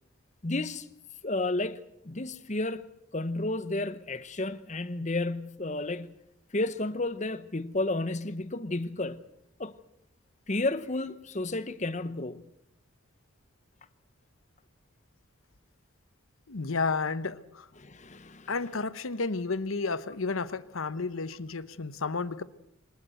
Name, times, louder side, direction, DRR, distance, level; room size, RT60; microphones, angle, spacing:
voice 1, 0.4-0.9 1.2-2.9 3.1-6.1 6.5-9.2 9.6-9.8 10.5-12.5 17.8-18.5, left 2 dB, 35° left, 1.0 m, -32 dB
voice 2, 16.5-17.7 18.5-22.4, left 4 dB, 75° left, 1.0 m, -32 dB
24.0 x 19.5 x 7.9 m
head